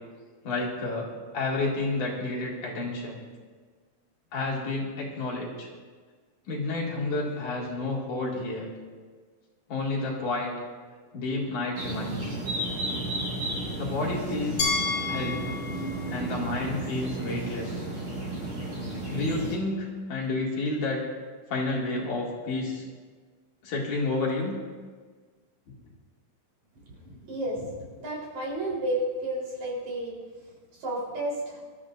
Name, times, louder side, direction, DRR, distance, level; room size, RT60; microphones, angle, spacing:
voice 1, 0.4-1.1 1.3-3.2 4.3-5.7 6.5-8.7 9.7-10.6 11.1-12.3 13.8-14.8 15.1-15.4 16.1-17.8 19.1-21.0 21.5-22.8 23.6-24.6, left 2 dB, 70° left, -3 dB, 3.7 m, -30 dB
sound 1, 11.7-19.5, right 2 dB, 45° right, 6.2 m, -33 dB
Glass, 14.6-17.5, left 4 dB, 50° left, 2.9 m, -32 dB
voice 2, 27.2-30.1 30.8-31.6, right 1 dB, 65° right, -4 dB, 5.3 m, -31 dB
24.0 x 13.0 x 2.6 m, 1.5 s
omnidirectional pair, 3.6 m